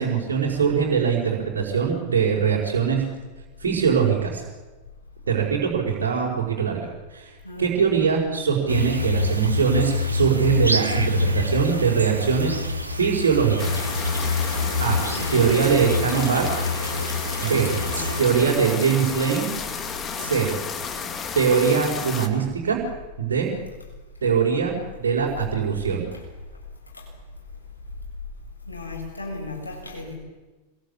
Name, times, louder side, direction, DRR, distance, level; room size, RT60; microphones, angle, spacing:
voice 1, 0.0-3.0 3.6-4.4 5.3-7.3 7.6-12.6 13.0-13.8 14.8-15.0 15.3-16.5 17.4-17.7 18.2-19.5 20.2-20.5 21.4-22.8 23.2-23.5 24.2-26.1, right 6 dB, 65° right, 5.2 m, -22 dB
voice 2, 7.4-7.8 14.9-15.4 17.8-18.1 20.2-20.6 26.1-26.2 26.9-27.1 28.7-30.1, left 2 dB, 80° left, 7.7 m, -36 dB
sound 1, 8.7-18.2, left 3 dB, 80° right, 2.3 m, -26 dB
sound 2, 13.6-22.3, left 6 dB, 25° left, 2.6 m, -32 dB
27.0 x 22.0 x 8.6 m
figure-of-eight pair, 90°, 0 cm